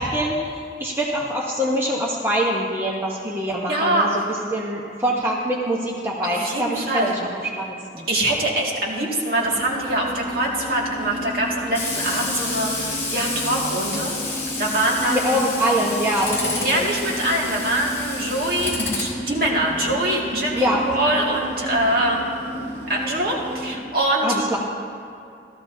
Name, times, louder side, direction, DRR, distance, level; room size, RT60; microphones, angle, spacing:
voice 1, 0.0-4.2 4.5-8.1 15.1-16.9 20.6-20.9 24.2-24.6, equal, 15° right, -3 dB, 0.9 m, -24 dB
voice 2, 3.7-4.1 6.2-7.2 8.1-15.4 16.4-22.2 22.9-24.4, right 1 dB, 55° right, -3 dB, 2.1 m, -24 dB
Tools, 9.4-23.7, left 1 dB, 15° left, 2.9 m, -30 dB
15.0 x 13.5 x 2.7 m, 2.6 s
head